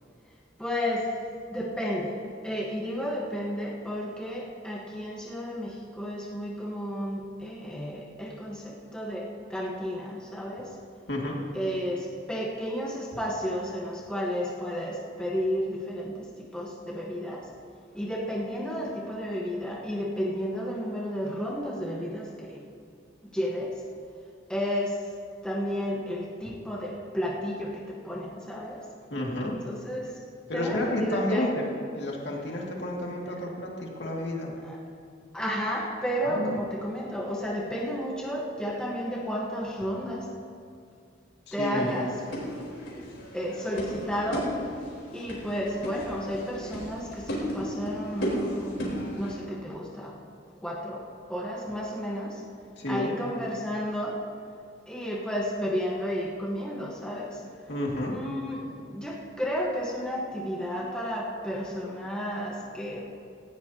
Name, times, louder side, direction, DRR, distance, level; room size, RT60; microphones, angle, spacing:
voice 1, 0.6-1.2 1.5-10.7 11.5-17.5 17.9-22.6 23.3-23.8 24.5-25.0 25.4-28.8 29.6-30.1 30.5-31.5 33.3-33.4 34.6-34.8 35.3-40.3 41.5-42.1 43.3-44.5 45.1-50.1 50.6-52.4 52.9-54.2 54.9-57.4 58.1-63.0, equal, 5° left, -4 dB, 1.3 m, -32 dB
voice 2, 29.1-29.5 30.5-31.6 31.9-34.5 36.2-36.5 41.5-42.1 52.8-53.1 57.7-58.1, left 1 dB, 60° left, -2 dB, 2.3 m, -30 dB
sound 1, 41.8-49.3, equal, 85° left, 4.0 m, -35 dB
18.0 x 15.5 x 2.9 m, 2.3 s
head